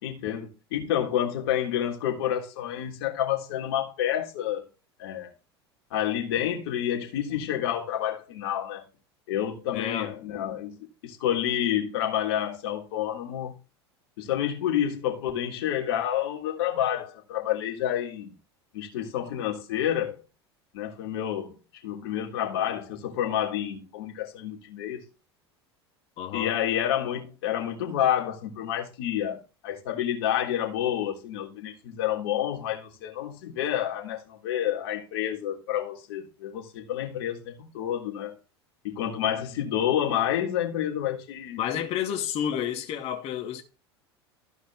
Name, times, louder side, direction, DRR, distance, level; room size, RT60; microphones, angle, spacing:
voice 1, 0.0-4.7 5.0-5.3 5.9-8.9 9.3-13.6 14.2-18.3 18.7-20.2 20.7-21.5 21.8-25.1 26.3-38.4 38.8-41.6, left 10 dB, 65° left, 3.3 m, -29 dB
voice 2, 9.7-10.1 26.2-26.5 41.6-43.6, left 9 dB, 50° left, 2.5 m, -30 dB
15.0 x 5.0 x 4.9 m
figure-of-eight pair, 80°, 14 cm